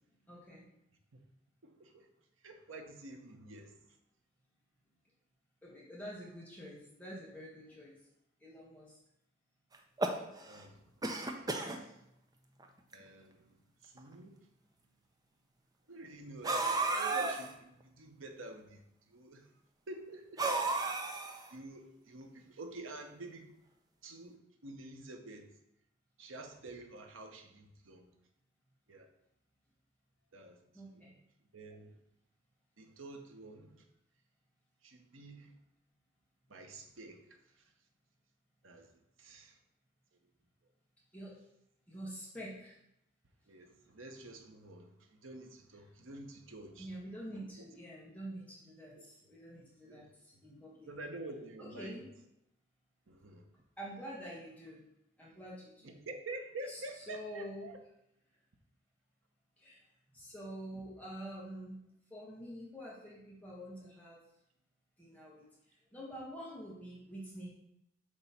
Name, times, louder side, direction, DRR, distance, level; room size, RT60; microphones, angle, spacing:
voice 1, 0.3-0.6 5.6-7.9 8.4-9.0 30.7-31.2 41.1-41.4 41.9-42.8 46.8-50.9 51.6-52.0 53.8-54.8 55.2-56.0 56.7-56.8 57.1-57.7 59.6-59.8 60.1-61.8 62.1-64.2 65.0-67.5, equal, 10° left, -6 dB, 1.2 m, -47 dB
voice 2, 1.6-2.1 2.4-3.8 10.0-12.0 12.9-13.6 13.8-14.5 15.9-18.8 19.1-19.5 19.9-20.5 21.5-23.6 24.0-25.5 26.2-28.1 28.9-29.1 30.3-30.6 30.9-31.1 31.5-32.0 32.8-33.8 34.8-35.5 36.5-37.6 38.6-38.9 39.2-39.6 43.5-46.9 49.0-49.1 49.9-50.1 50.9-52.0 53.1-53.5 55.8-57.8, right 2 dB, 90° right, 5 dB, 0.9 m, -49 dB
sound 1, 9.7-10.6 11.0-11.8 12.6-12.7 12.9-13.0 14.0-14.1 16.4-17.5 20.4-21.5, right 3 dB, 20° right, 0.5 m, -33 dB
7.7 x 3.1 x 5.6 m, 0.80 s
head